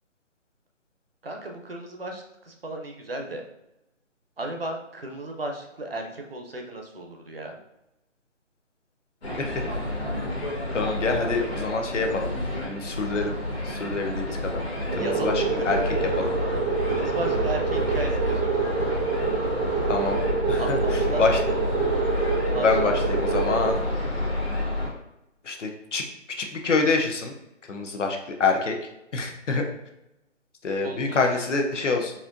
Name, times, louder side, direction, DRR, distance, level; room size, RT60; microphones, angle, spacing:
voice 1, 1.2-3.4 4.4-7.6 14.9-15.7 16.6-18.9 20.6-21.2 22.5-22.9 30.8-31.6, right 2 dB, 50° right, 2 dB, 0.6 m, -35 dB
sound 1, 9.2-24.9, left 1 dB, 55° left, 1.1 m, -29 dB
voice 2, 10.7-12.3 12.7-13.3 13.7-14.6 15.0-15.8 16.1-16.3 19.9-20.2 20.5-20.8 21.2-21.4 22.6-23.8 25.5-26.0 26.4-27.3 27.7-28.7 29.1-29.6 30.6-32.1, left 4 dB, 70° left, 3 dB, 0.8 m, -26 dB
sound 2, 14.9-23.7, right 5 dB, 90° right, 1.2 m, -27 dB
4.3 x 2.5 x 2.5 m, 0.88 s
hypercardioid pair, 180°, 37 cm